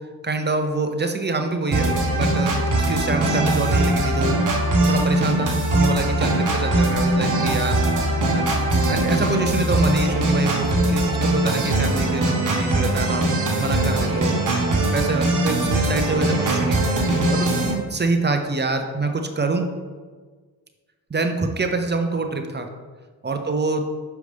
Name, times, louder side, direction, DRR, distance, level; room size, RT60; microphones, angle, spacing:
voice 1, 0.2-7.8 8.3-8.5 8.9-13.2 13.6-14.6 14.9-16.8 17.3-19.7 21.1-22.7 23.2-23.8, right 3 dB, 25° right, 5 dB, 0.7 m, -25 dB
sound 1, 1.7-17.7, right 1 dB, 50° right, 1.3 m, -21 dB
6.6 x 4.7 x 3.4 m, 1.5 s
cardioid pair, 70°, 40 cm